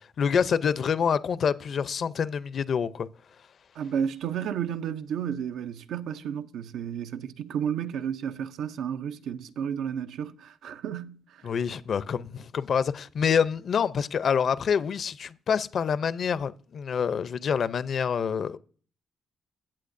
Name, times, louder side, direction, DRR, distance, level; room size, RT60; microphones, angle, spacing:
voice 1, 0.2-3.1 11.4-18.6, left 7 dB, 55° left, 0.5 m, -26 dB
voice 2, 3.8-11.4, right 8 dB, 80° right, 0.6 m, -32 dB
16.0 x 8.0 x 2.6 m
cardioid pair, 85°, 0 cm